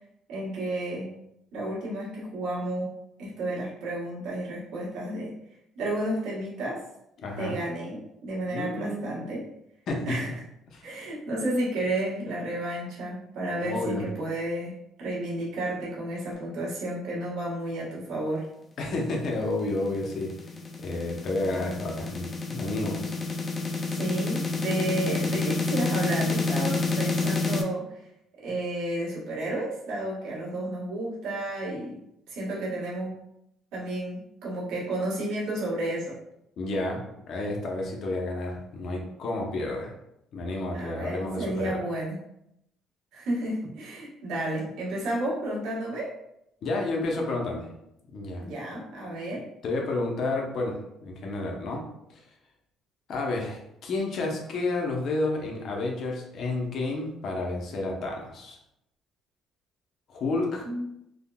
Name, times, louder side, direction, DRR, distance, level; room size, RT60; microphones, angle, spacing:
voice 1, 0.3-1.1 1.5-2.9 3.2-5.3 5.8-6.8 7.4-9.4 10.1-10.3 10.8-18.4 23.9-27.9 28.4-31.9 32.3-33.2 33.7-36.2 40.7-42.1 43.1-46.1 48.4-49.4 60.6-60.9, right 1 dB, 80° right, -6 dB, 1.2 m, -32 dB
voice 2, 7.2-7.6 8.5-9.2 9.9-10.2 10.7-11.0 13.6-14.1 18.8-23.2 36.6-39.9 40.3-41.8 46.6-47.7 48.1-48.4 49.6-52.2 53.1-58.6 60.1-60.7, left 2 dB, 55° left, 0 dB, 0.7 m, -31 dB
sound 1, 19.5-27.6, left 3 dB, 25° left, 0.4 m, -29 dB
3.5 x 2.1 x 2.2 m, 0.81 s
cardioid pair, 115°, 0 cm